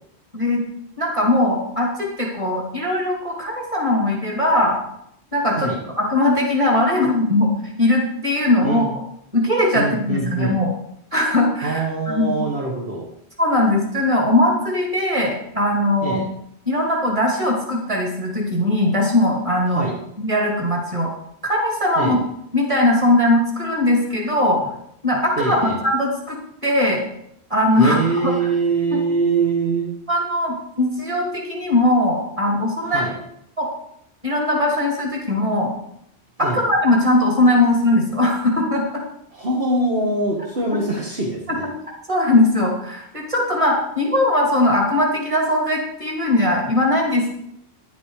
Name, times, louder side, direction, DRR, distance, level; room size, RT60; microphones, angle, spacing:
voice 1, 0.3-0.6 1.0-4.8 5.3-5.7 6.0-7.5 7.8-8.8 9.3-10.7 11.1-12.3 13.4-16.2 16.7-19.9 20.2-21.1 21.4-22.2 22.5-24.7 25.0-26.4 26.6-27.0 27.5-28.0 28.2-28.3 28.9-29.0 30.1-33.1 33.6-33.7 34.2-35.7 36.4-39.0 41.5-41.6 42.1-47.4, left 1 dB, 30° right, -1 dB, 2.9 m, -19 dB
voice 2, 9.7-10.6 11.6-13.1 16.0-16.2 19.7-19.9 22.0-22.2 25.4-25.8 27.8-29.9 32.8-33.1 36.4-36.6 39.3-41.7, right 3 dB, 60° right, -2 dB, 1.7 m, -23 dB
10.0 x 9.3 x 4.9 m, 0.73 s
omnidirectional pair, 1.1 m